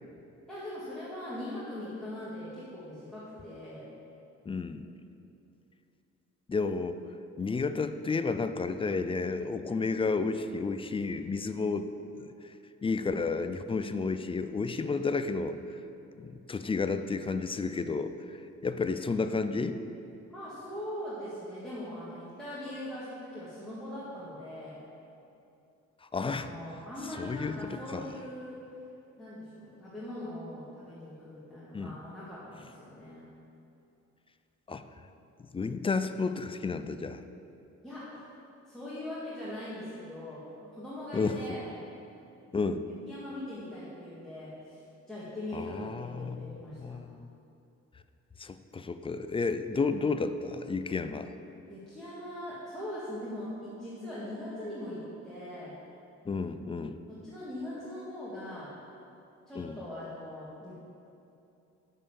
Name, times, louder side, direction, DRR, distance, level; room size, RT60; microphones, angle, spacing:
voice 1, 0.5-3.8 20.3-24.8 26.2-28.6 29.2-33.3 37.8-38.1 38.7-40.4 40.7-41.7 43.1-47.0 51.7-55.8 57.2-58.7 59.5-60.7, left 1 dB, ahead, -10 dB, 1.9 m, -41 dB
voice 2, 4.5-4.9 6.5-7.0 7.4-11.9 12.2-12.5 12.8-15.8 16.2-18.4 18.6-19.8 26.0-26.5 27.2-28.1 31.7-32.0 34.7-34.9 35.5-37.2 41.1-41.6 42.5-42.9 45.5-46.5 46.8-47.3 48.4-51.3 56.3-57.0 59.6-59.8, left 4 dB, 20° left, 10 dB, 0.3 m, -32 dB
6.3 x 5.5 x 6.9 m, 2.8 s
cardioid pair, 90°, 30 cm